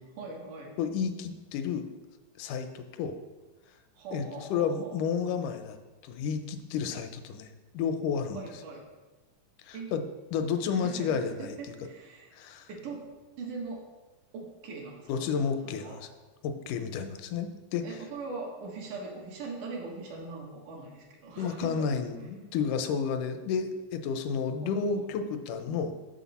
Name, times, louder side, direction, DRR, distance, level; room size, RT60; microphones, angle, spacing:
voice 1, 0.2-0.7 4.0-5.0 8.3-8.8 9.7-9.9 10.7-12.3 12.7-13.1 13.4-13.8 14.3-15.3 15.6-16.0 17.8-21.9 24.6-25.0, right 4 dB, 80° right, -1 dB, 2.7 m, -41 dB
voice 2, 0.8-1.9 2.4-3.2 4.1-4.2 4.5-5.8 6.0-8.5 9.6-10.0 10.3-11.6 12.3-12.7 15.1-16.1 16.4-17.8 21.4-25.9, left 6 dB, 85° left, 8 dB, 2.1 m, -31 dB
6.4 x 6.3 x 4.1 m, 1.2 s
omnidirectional pair, 3.6 m